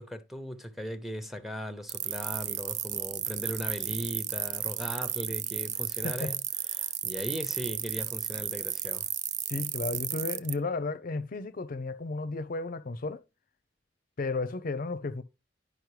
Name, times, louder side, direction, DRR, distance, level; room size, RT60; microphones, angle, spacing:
voice 1, 0.0-6.4 6.7-9.1, equal, ahead, 0.8 m, -38 dB
sound 1, 1.9-10.5, right 12 dB, 40° right, 0.4 m, -33 dB
voice 2, 6.0-6.3 9.5-13.2 14.2-15.2, left 3 dB, 50° left, 0.5 m, -33 dB
10.5 x 5.3 x 3.2 m
head